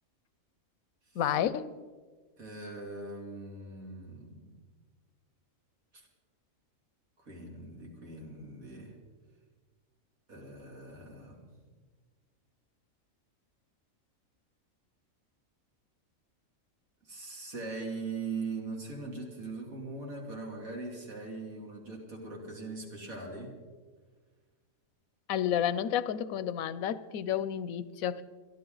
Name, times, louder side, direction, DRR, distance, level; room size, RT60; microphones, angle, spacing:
voice 1, 1.2-1.7 25.3-28.2, left 9 dB, 85° left, 1.1 m, -30 dB
voice 2, 2.4-4.5 5.9-6.1 7.2-8.9 10.3-11.5 17.0-23.5, right 3 dB, 90° right, 3.4 m, -41 dB
27.0 x 11.5 x 3.9 m
omnidirectional pair, 1.4 m